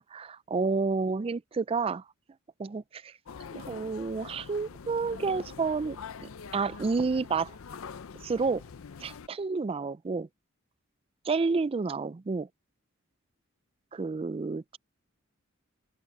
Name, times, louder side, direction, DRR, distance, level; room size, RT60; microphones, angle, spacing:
voice 1, 0.0-2.0 2.6-3.1 3.5-6.0 6.5-7.5 8.2-8.6 9.0-10.3 11.2-12.5 13.9-14.8, right 4 dB, 25° right, 0.3 m, -30 dB
sound 1, 3.3-9.3, left 6 dB, 70° left, 0.5 m, -44 dB
head